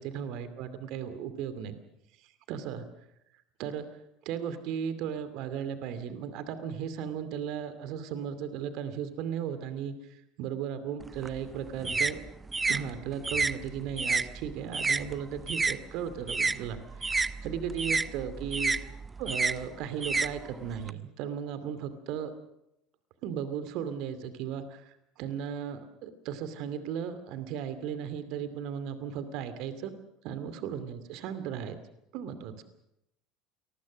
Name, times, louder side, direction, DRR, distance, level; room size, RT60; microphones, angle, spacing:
voice 1, 0.0-1.8 2.5-2.8 3.6-4.0 4.2-12.2 12.7-18.9 19.2-22.3 23.2-29.9 30.2-31.8 32.1-32.6, right 8 dB, 55° right, 12 dB, 2.5 m, -36 dB
sound 1, 11.0-15.8 16.1-20.9, right 4 dB, 20° right, 0.9 m, -30 dB
28.0 x 20.0 x 6.3 m, 0.84 s
figure-of-eight pair, 70°, 0 cm